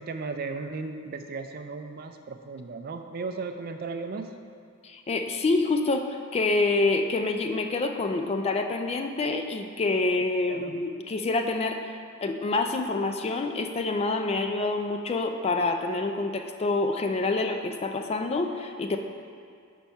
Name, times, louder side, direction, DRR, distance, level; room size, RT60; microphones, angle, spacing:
voice 1, 0.0-4.3 10.5-10.8, right 4 dB, 45° right, 6 dB, 0.4 m, -35 dB
voice 2, 4.8-19.0, left 3 dB, 30° left, 5 dB, 0.3 m, -27 dB
5.8 x 4.6 x 5.3 m, 2.3 s
head